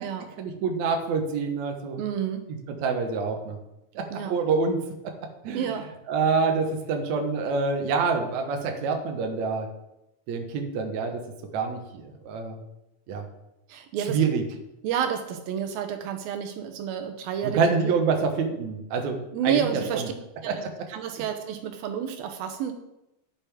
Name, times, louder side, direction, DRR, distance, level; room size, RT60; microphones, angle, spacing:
voice 1, 0.4-2.0 2.5-3.6 3.9-5.1 5.4-5.6 6.1-9.7 10.3-11.2 11.5-12.6 13.1-13.3 14.1-14.4 17.4-19.2 19.4-20.1 20.5-20.6, right 4 dB, 65° right, 3 dB, 2.2 m, -26 dB
voice 2, 2.0-2.5 4.1-4.4 5.5-5.9 13.7-14.2 14.8-17.9 19.3-20.1 20.4-20.6 20.9-22.7, right 8 dB, 80° right, 6 dB, 2.6 m, -30 dB
11.0 x 10.0 x 3.5 m, 0.90 s
omnidirectional pair, 4.2 m